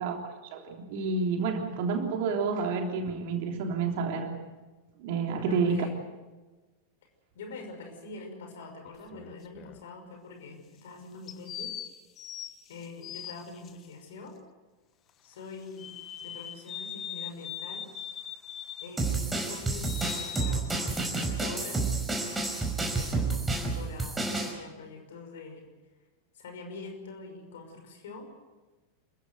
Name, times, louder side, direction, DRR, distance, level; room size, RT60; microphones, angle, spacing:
voice 1, 0.0-4.3 5.0-5.9, right 5 dB, 50° right, 3 dB, 3.3 m, -29 dB
voice 2, 5.3-6.0 7.3-11.8 12.7-14.4 15.2-15.9 16.2-17.9 18.8-21.8 22.2-22.5 23.0-25.7 26.3-28.3, left 3 dB, 60° left, 4 dB, 5.8 m, -44 dB
sound 1, 8.9-9.8 11.3-13.7 15.8-19.0 19.4-20.8, left 10 dB, 30° left, 1.2 m, -41 dB
sound 2, 19.0-24.5, right 3 dB, 10° right, 5.2 m, -30 dB
28.0 x 15.5 x 8.1 m, 1.2 s
figure-of-eight pair, 90°, 0 cm